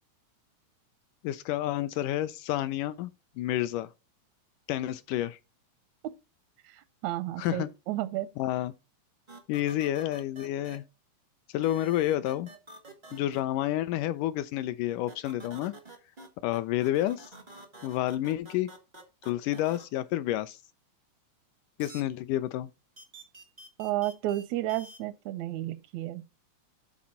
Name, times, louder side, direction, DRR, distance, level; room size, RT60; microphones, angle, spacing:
voice 1, 1.2-3.1 3.4-3.9 4.7-5.4 7.4-7.7 8.4-8.7 9.5-10.8 11.5-12.5 13.1-15.7 16.4-17.3 17.8-18.7 19.3-20.6 21.8-22.7, left 13 dB, 80° left, 2.0 m, -29 dB
voice 2, 6.7-8.3 23.8-26.2, right 14 dB, 80° right, 1.6 m, -32 dB
sound 1, 9.3-10.8 11.6-13.4 15.1-16.3 16.5-19.8 21.8-22.0 23.0-24.4 24.7-25.0, right 2 dB, 35° right, 0.6 m, -48 dB
8.6 x 4.2 x 5.6 m
omnidirectional pair, 3.9 m